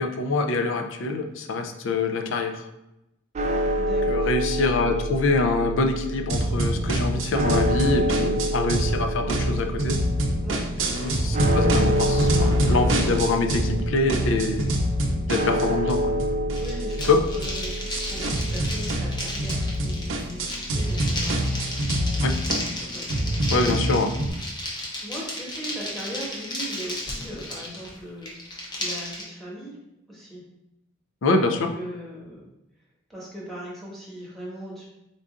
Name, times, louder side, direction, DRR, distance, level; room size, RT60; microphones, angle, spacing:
voice 1, 0.0-2.7 4.1-10.0 10.8-14.7 15.3-16.1 17.0-17.2 22.2-22.3 23.5-24.1 31.2-31.7, left 3 dB, 75° left, 6 dB, 0.4 m, -25 dB
sound 1, 3.3-21.6, right 1 dB, 35° right, 0.4 m, -29 dB
voice 2, 3.7-4.2 10.4-10.6 16.6-21.4 22.9-23.1 25.0-28.3 28.8-29.8 30.1-30.4 31.7-32.5 33.1-34.9, right 1 dB, ahead, -6 dB, 1.2 m, -38 dB
sound 2, 6.3-9.0 9.3-13.8 14.1-24.3, equal, 85° right, 0.6 m, -26 dB
sound 3, 16.5-29.2, left 1 dB, 20° left, 0.7 m, -34 dB
3.9 x 3.6 x 2.5 m, 0.89 s
head